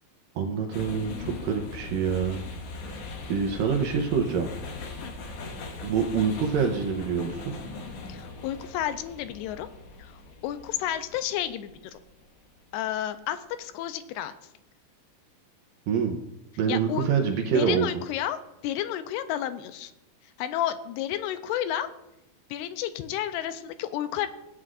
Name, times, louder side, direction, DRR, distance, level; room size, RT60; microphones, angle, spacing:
voice 1, 0.4-2.4 2.8-4.5 5.8-7.5 15.9-16.2 16.6-17.9, right 6 dB, 75° right, 3 dB, 2.2 m, -26 dB
sound 1, 0.7-12.8, left 3 dB, 70° left, 1.9 m, -40 dB
voice 2, 8.1-9.7 10.0-10.1 10.4-12.0 12.7-14.3 16.7-17.1 17.5-18.4 18.6-19.9 20.4-21.9 22.5-24.3, left 11 dB, 85° left, 11 dB, 2.6 m, -31 dB
16.5 x 9.4 x 2.5 m, 0.90 s
omnidirectional pair, 4.8 m